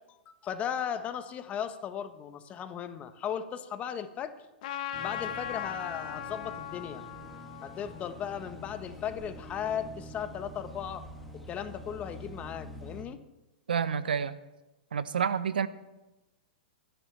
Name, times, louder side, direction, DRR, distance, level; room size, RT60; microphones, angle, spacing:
voice 1, 0.1-4.3 5.0-7.0 7.6-11.0 11.3-13.2, left 8 dB, 25° left, 9 dB, 1.2 m, -36 dB
Trumpet, 4.6-9.3, left 9 dB, 55° left, 1.3 m, -40 dB
sound 1, 4.9-13.0, equal, ahead, 2.4 m, -46 dB
voice 2, 13.7-14.4 14.9-15.7, right 7 dB, 80° right, 14 dB, 0.8 m, -28 dB
23.5 x 10.5 x 3.4 m, 1.0 s
hypercardioid pair, 115°, 5 cm